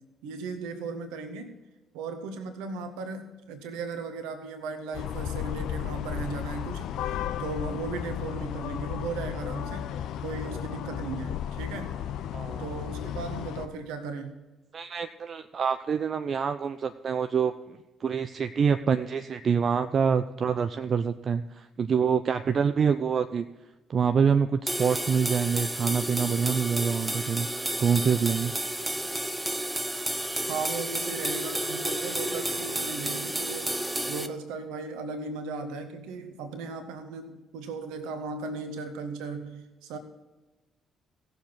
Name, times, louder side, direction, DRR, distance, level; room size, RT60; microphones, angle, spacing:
voice 1, 0.2-1.6 1.9-10.0 10.2-12.0 12.6-14.4 30.5-40.0, right 4 dB, 65° right, 8 dB, 1.3 m, -37 dB
sound 1, 4.9-13.7, left 10 dB, 60° left, 0.6 m, -34 dB
voice 2, 12.3-12.7 14.7-23.5 23.9-27.5 27.8-28.5, right 6 dB, 45° right, 10 dB, 0.4 m, -26 dB
sound 2, 24.7-34.3, right 1 dB, 10° right, 0.9 m, -31 dB
17.5 x 7.1 x 4.0 m, 1.1 s
figure-of-eight pair, 45°, 0 cm